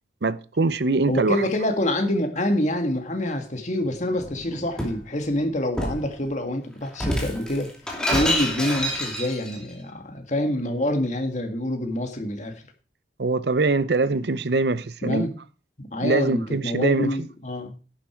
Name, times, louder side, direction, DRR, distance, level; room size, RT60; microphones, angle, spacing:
voice 1, 0.2-1.4 13.2-15.3 16.0-17.1, right 3 dB, 65° right, 0.7 m, -23 dB
voice 2, 1.1-7.7 8.1-12.5 15.0-15.3 15.8-17.8, left 1 dB, 40° left, 2.1 m, -26 dB
Shatter, 4.2-5.0 5.8-6.1 6.9-9.6, equal, 5° left, 2.7 m, -27 dB
11.5 x 9.4 x 4.5 m
head